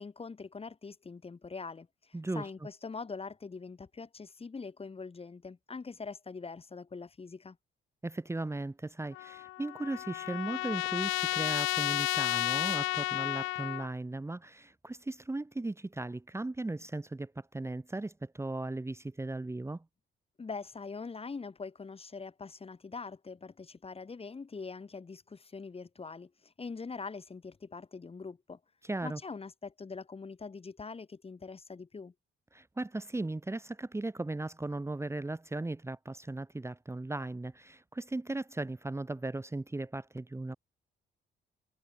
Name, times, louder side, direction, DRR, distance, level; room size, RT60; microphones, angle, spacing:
voice 1, 0.0-7.6 20.4-28.6 29.0-32.1, left 4 dB, 30° left, 2.7 m, -43 dB
voice 2, 2.1-2.5 8.0-19.8 28.8-29.2 32.5-40.6, right 2 dB, 15° right, 1.4 m, -37 dB
Trumpet, 9.1-13.9, left 19 dB, 90° left, 0.4 m, -32 dB
cardioid pair, 90°, 20 cm